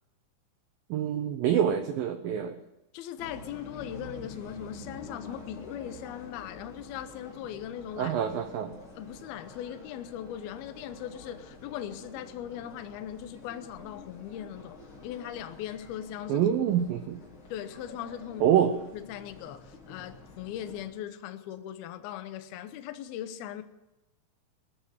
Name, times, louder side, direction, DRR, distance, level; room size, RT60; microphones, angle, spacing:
voice 1, 0.9-2.6 8.0-8.7 16.3-17.2 18.4-18.7, right 9 dB, 85° right, 2.0 m, -26 dB
voice 2, 2.9-8.2 9.0-16.5 17.5-18.6 18.9-23.6, left 10 dB, 80° left, 2.3 m, -39 dB
sound 1, 3.2-20.9, left 3 dB, 30° left, 2.9 m, -48 dB
20.5 x 7.1 x 8.8 m
omnidirectional pair, 5.3 m